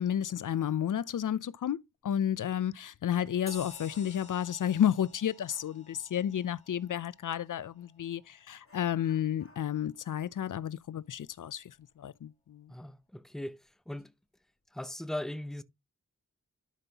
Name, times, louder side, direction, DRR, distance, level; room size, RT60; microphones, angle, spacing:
voice 1, 0.0-12.7, left 10 dB, 75° left, 0.5 m, -32 dB
Dog, 3.4-4.6 5.4-5.8 7.8-7.9 8.6-11.9 12.2-12.3 12.9-13.0 13.6-14.0 14.4-14.7, left 3 dB, 45° left, 2.6 m, -64 dB
sound 1, 3.5-8.4, left 2 dB, 20° left, 2.1 m, -52 dB
voice 2, 12.7-14.1 14.7-15.6, left 1 dB, ahead, 0.7 m, -39 dB
12.0 x 5.4 x 2.9 m
wide cardioid pair, 105°, 32 cm